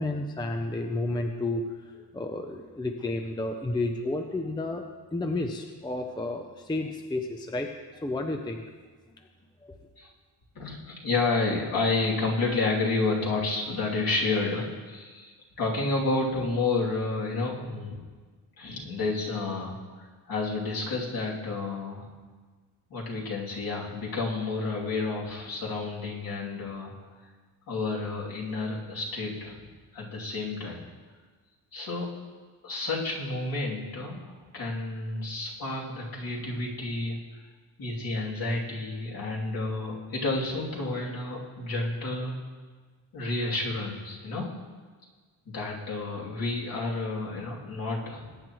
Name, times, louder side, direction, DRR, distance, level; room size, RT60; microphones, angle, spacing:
voice 1, 0.0-1.6 2.1-4.8 5.1-7.7 8.0-8.6 9.6-9.8, left 2 dB, 10° left, 4 dB, 0.5 m, -31 dB
voice 2, 10.5-18.0 18.6-22.1 22.9-26.9 27.7-29.7 29.9-30.8 31.7-32.1 32.6-37.2 37.8-42.3 43.1-44.5 45.5-48.3, left 3 dB, 55° left, -4 dB, 2.8 m, -30 dB
21.0 x 9.8 x 3.1 m, 1.4 s
cardioid pair, 160°, 43 cm